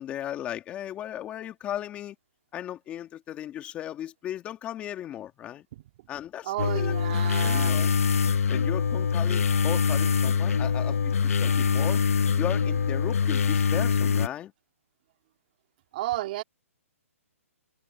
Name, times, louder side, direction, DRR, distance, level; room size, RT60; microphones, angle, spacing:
voice 1, 0.0-2.2 2.5-5.7 6.1-7.0 7.4-7.9 8.5-11.1 11.4-12.0 12.4-14.5, left 11 dB, 15° left, 2.2 m, -36 dB
voice 2, 6.4-7.8 15.9-16.4, right 15 dB, 40° right, 2.7 m, -32 dB
sound 1, 6.6-14.3, left 6 dB, 70° left, 1.0 m, -24 dB
hypercardioid pair, 160°, 8 cm